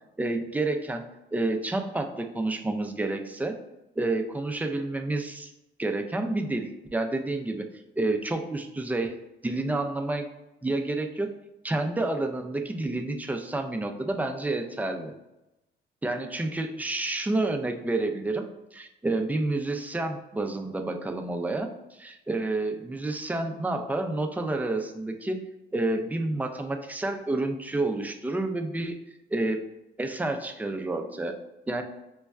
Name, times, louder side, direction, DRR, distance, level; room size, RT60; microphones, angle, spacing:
voice 1, 0.2-1.0 1.3-3.6 4.0-5.5 5.8-7.7 8.0-9.2 9.4-10.3 10.6-11.3 11.6-15.1 16.0-18.4 18.7-25.4 25.7-29.0 29.3-29.6 30.0-31.4 31.7-31.8, right 2 dB, 10° right, 4 dB, 0.3 m, -29 dB
5.2 x 2.1 x 2.3 m, 0.95 s
cardioid pair, 90°, 20 cm